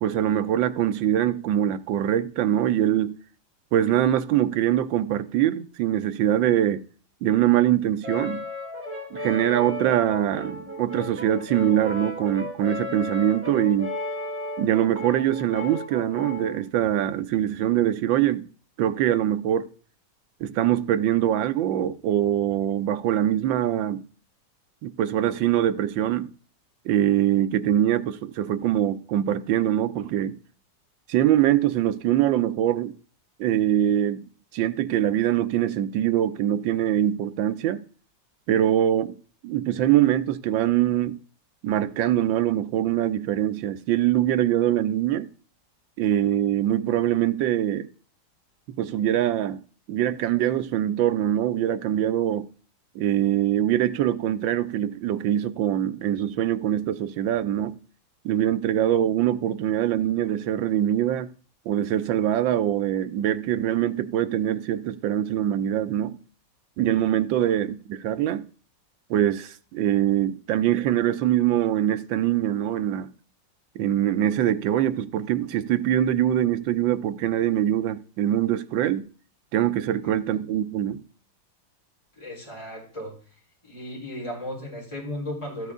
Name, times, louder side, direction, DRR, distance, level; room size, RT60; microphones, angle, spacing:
voice 1, 0.0-3.2 3.7-6.8 7.2-8.4 9.1-13.9 14.6-18.5 18.8-19.7 20.4-24.0 24.8-26.3 26.8-30.4 31.1-32.9 33.4-34.2 34.5-37.8 38.5-39.1 39.4-41.2 41.6-45.3 46.0-47.9 48.8-49.6 49.9-52.5 52.9-57.8 58.2-61.3 61.7-66.2 66.8-68.4 69.1-73.1 73.8-79.0 79.5-81.0, right 11 dB, 80° right, 1.4 m, -23 dB
Brass instrument, 8.0-16.6, left 1 dB, 5° right, 3.4 m, -34 dB
voice 2, 80.0-80.4 82.1-83.2 83.6-85.7, left 1 dB, 15° left, 4.0 m, -36 dB
13.5 x 8.0 x 3.6 m
omnidirectional pair, 2.0 m